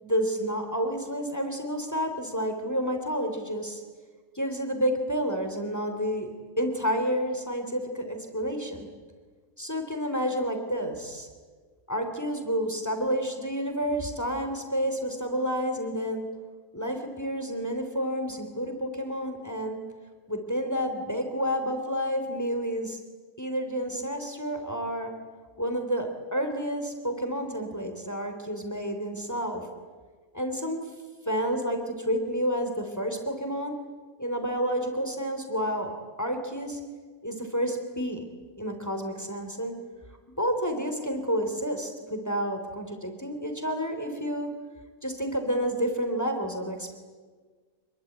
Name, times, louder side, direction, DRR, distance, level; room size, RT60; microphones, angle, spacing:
voice 1, 0.0-3.8 4.3-8.9 9.6-11.3 11.9-16.3 16.7-19.8 20.3-23.0 23.4-25.1 25.6-29.7 30.3-30.8 31.3-33.8 34.2-36.8 37.2-38.2 38.6-39.7 40.4-44.5 45.0-46.9, equal, 10° left, 5 dB, 3.3 m, -30 dB
26.0 x 22.0 x 9.4 m, 1.5 s
omnidirectional pair, 1.6 m